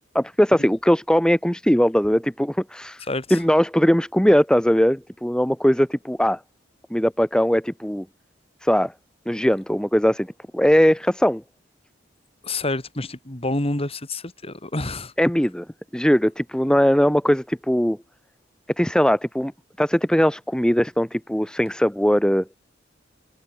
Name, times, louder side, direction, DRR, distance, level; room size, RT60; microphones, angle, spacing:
voice 1, 0.1-3.0 3.3-6.4 6.9-8.0 8.6-8.9 9.3-11.4 15.2-15.7 15.9-18.0 18.8-19.5 19.8-22.4, equal, 5° left, 1.4 m, -20 dB
voice 2, 3.1-3.4 12.4-15.1, left 2 dB, 30° left, 3.1 m, -28 dB
head